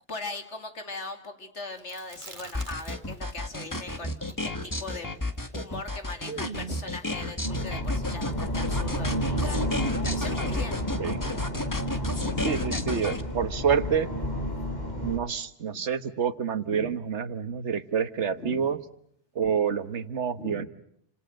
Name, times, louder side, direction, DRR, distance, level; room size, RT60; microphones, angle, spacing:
voice 1, 0.1-5.1 5.5-10.8 12.0-13.1 14.0-14.1 15.1-15.3 15.7-15.8 16.6-17.0 18.3-18.7 20.4-20.7, left 3 dB, 85° left, 6 dB, 3.0 m, -40 dB
Chewing mastication, 1.8-3.3 3.5-6.9, right 3 dB, 45° right, 2.1 m, -43 dB
sound 1, 2.5-13.2, left 1 dB, 15° left, 1.7 m, -32 dB
sound 2, 7.4-15.2, equal, 40° left, 4.2 m, -31 dB
voice 2, 12.4-14.1 14.9-18.8 19.3-20.7, right 7 dB, 80° right, 12 dB, 1.6 m, -28 dB
30.0 x 27.0 x 6.5 m, 0.70 s
omnidirectional pair, 1.2 m